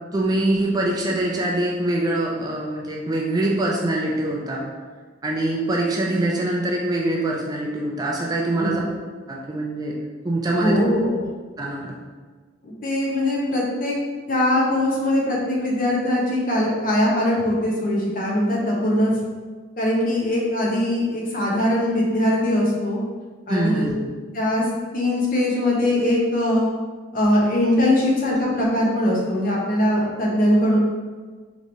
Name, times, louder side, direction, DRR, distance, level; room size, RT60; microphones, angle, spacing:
voice 1, 0.1-4.7 5.2-8.8 9.3-10.0 10.2-10.8 11.6-11.9 23.5-24.0, right 1 dB, 20° right, -2 dB, 0.4 m, -24 dB
voice 2, 10.6-11.3 12.6-13.9 14.3-19.1 19.8-23.0 23.5-24.0 24.3-24.6 24.9-26.7 27.1-30.8, left 1 dB, 45° left, -4 dB, 0.9 m, -21 dB
4.9 x 3.0 x 2.7 m, 1.4 s
head